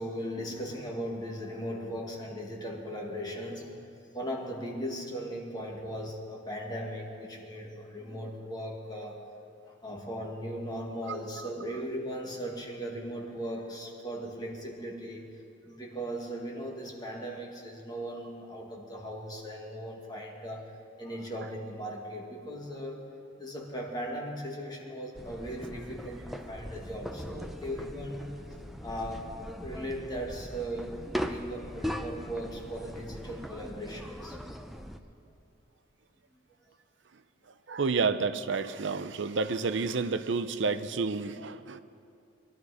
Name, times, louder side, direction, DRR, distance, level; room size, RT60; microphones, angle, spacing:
voice 1, 0.0-3.8 4.1-9.2 9.8-15.2 15.7-20.7 21.0-23.0 23.4-28.3 28.8-29.3 29.6-34.4, equal, 20° left, -1 dB, 1.9 m, -38 dB
sound 1, 25.1-35.0, equal, ahead, 0.6 m, -40 dB
voice 2, 37.7-41.8, right 4 dB, 65° right, 12 dB, 0.6 m, -30 dB
21.5 x 12.0 x 4.9 m, 2.5 s
head